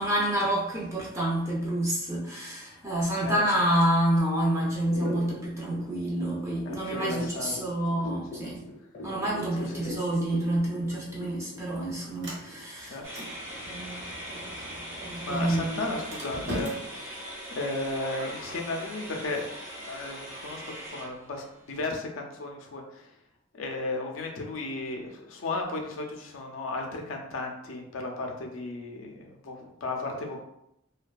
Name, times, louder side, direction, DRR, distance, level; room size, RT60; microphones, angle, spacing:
voice 1, 0.0-8.6 9.0-13.3 13.6-14.0 14.3-14.4 15.0-15.8, right 1 dB, 15° right, -5 dB, 0.4 m, -28 dB
sound 1, 4.8-12.6, left 2 dB, 45° left, 0.6 m, -40 dB
voice 2, 6.6-7.6 8.1-8.4 9.5-9.9 12.8-13.1 15.2-19.4 19.8-23.1 23.5-30.4, left 2 dB, 80° left, 2 dB, 0.5 m, -35 dB
Sliding door, 10.9-20.9, equal, 60° right, 0.8 m, -43 dB
sound 2, 13.0-21.6, equal, 85° right, 1.0 m, -41 dB
2.5 x 2.2 x 2.2 m, 0.79 s
head